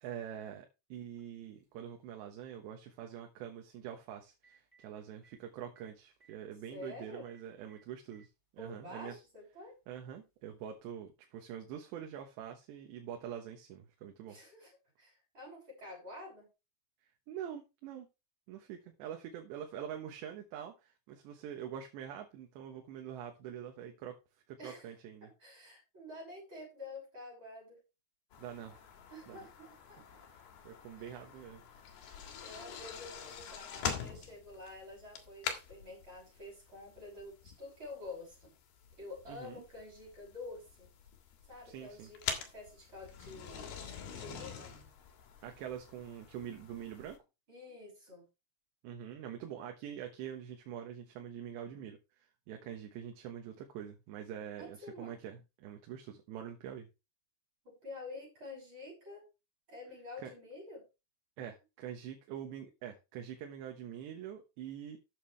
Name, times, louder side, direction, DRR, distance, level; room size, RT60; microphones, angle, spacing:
voice 1, 0.0-9.2 9.9-14.4 17.3-18.1 18.5-24.2 24.5-25.3 28.4-28.8 29.3-29.4 30.3-31.6 39.3-39.6 41.7-42.1 45.4-47.2 48.8-56.9 60.2-60.3 61.4-65.0, right 9 dB, 85° right, 3 dB, 3.5 m, -45 dB
Telephone, 1.6-1.7 3.9-4.0 4.3-4.8 5.2-5.3 5.8-5.9 6.1-6.3 6.8-6.9 7.3-7.4 7.7-8.3 9.2-9.3 10.8-10.9, right 4 dB, 5° right, 3.9 m, -64 dB
voice 2, 6.7-7.3 8.6-9.8 14.3-16.5 24.6-24.9 25.2-27.8 29.1-30.0 31.0-31.2 31.9-32.0 32.4-38.6 39.0-40.9 41.5-43.7 44.1-44.8 47.5-48.3 54.6-55.2 57.7-59.3 59.7-60.8, left 2 dB, 25° right, -3 dB, 6.8 m, -49 dB
sound 1, 28.3-47.2, left 7 dB, 65° left, 3.5 m, -45 dB
13.0 x 8.4 x 3.4 m, 0.27 s
omnidirectional pair, 4.9 m